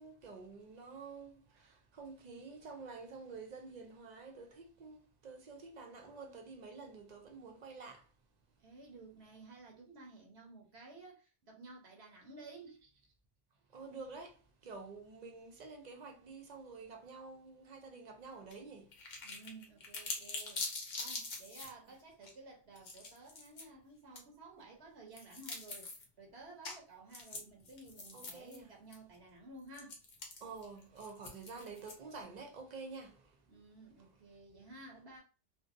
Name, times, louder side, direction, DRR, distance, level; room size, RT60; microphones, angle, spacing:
voice 1, 0.0-8.1 13.7-18.9 28.1-28.7 30.4-33.4 34.0-34.1, right 4 dB, 50° right, 0.6 m, -49 dB
voice 2, 8.6-12.8 19.2-20.7 21.0-30.0 33.5-35.2, right 3 dB, 80° right, 1.0 m, -54 dB
sound 1, 18.5-18.6 18.9-21.7 22.2-22.3 22.8-23.6 24.2-24.3 25.1-26.0 26.6-26.8 27.1-28.6 28.9-29.0 29.7-32.2, left 3 dB, 50° left, 0.7 m, -44 dB
2.6 x 2.1 x 2.5 m
omnidirectional pair, 1.1 m